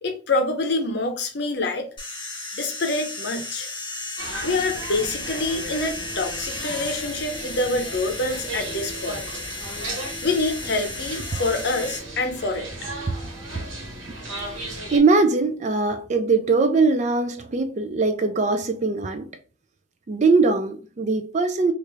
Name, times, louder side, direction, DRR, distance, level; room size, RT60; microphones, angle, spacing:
voice 1, 0.0-1.9 2.6-3.7 4.4-9.2 10.2-12.9, left 2 dB, 55° left, 0.7 m, -26 dB
sound 1, 2.0-12.0, left 3 dB, 25° left, 0.8 m, -34 dB
sound 2, 4.2-15.0, right 2 dB, 75° right, 1.2 m, -36 dB
voice 2, 14.9-19.3 20.1-21.7, right 3 dB, 35° right, 0.4 m, -21 dB
3.3 x 2.5 x 3.0 m
head